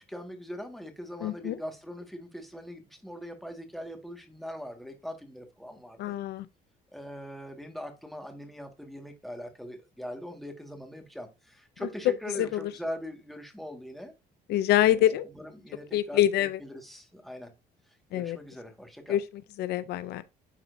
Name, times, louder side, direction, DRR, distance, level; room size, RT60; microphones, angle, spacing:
voice 1, 0.1-6.1 6.9-14.1 14.8-17.5 18.1-19.2, equal, ahead, 1.8 m, -41 dB
voice 2, 1.2-1.5 6.0-6.4 14.5-15.3 15.9-16.6 18.1-18.4 19.1-19.2 19.6-20.2, left 12 dB, 75° left, 0.5 m, -25 dB
11.5 x 4.2 x 2.6 m
cardioid pair, 110°, 17 cm